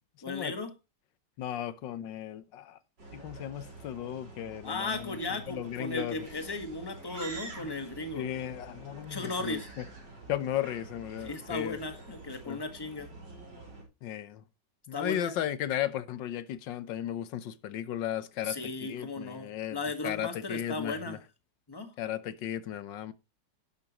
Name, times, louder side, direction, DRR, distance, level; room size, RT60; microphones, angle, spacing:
voice 1, 0.2-0.7 4.6-8.3 9.1-9.7 11.2-13.1 14.9-15.4 18.4-21.2 21.7-21.9, left 2 dB, 15° left, 1.5 m, -36 dB
voice 2, 1.4-2.8 3.1-5.2 5.5-6.2 8.1-9.8 10.3-11.8 12.5-12.6 14.0-14.4 14.9-19.8 20.0-21.2 22.0-23.1, left 11 dB, 90° left, 1.6 m, -35 dB
sound 1, 3.0-13.8, right 2 dB, 80° right, 4.7 m, -47 dB
11.5 x 11.0 x 3.0 m
omnidirectional pair, 1.9 m